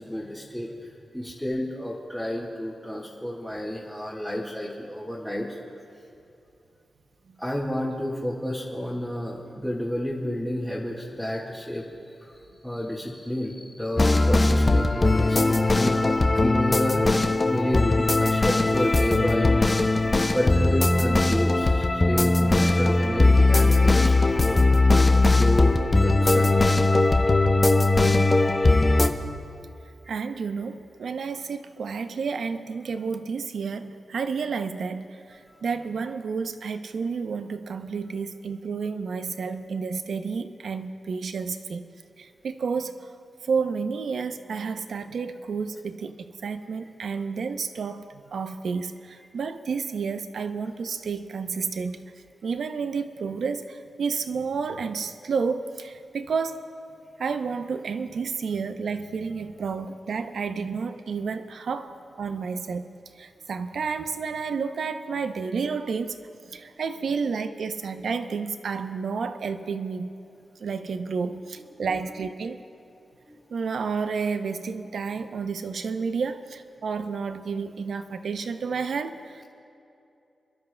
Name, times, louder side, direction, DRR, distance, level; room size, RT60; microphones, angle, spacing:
voice 1, 0.0-5.6 7.4-11.8 12.2-12.4 12.6-19.5 20.3-24.8 25.3-25.7 26.0-26.5 30.0-30.1 71.8-72.0 73.3-73.4, equal, 5° left, -5 dB, 1.7 m, -30 dB
sound 1, 14.0-29.1, left 2 dB, 30° left, 0.7 m, -20 dB
voice 2, 30.1-41.9 42.2-43.1 43.4-52.0 52.4-56.7 57.2-62.9 63.2-66.2 66.5-70.1 70.6-72.6 73.5-79.4, right 5 dB, 75° right, 9 dB, 0.6 m, -30 dB
28.5 x 12.5 x 2.2 m, 2.7 s
cardioid pair, 75°, 0 cm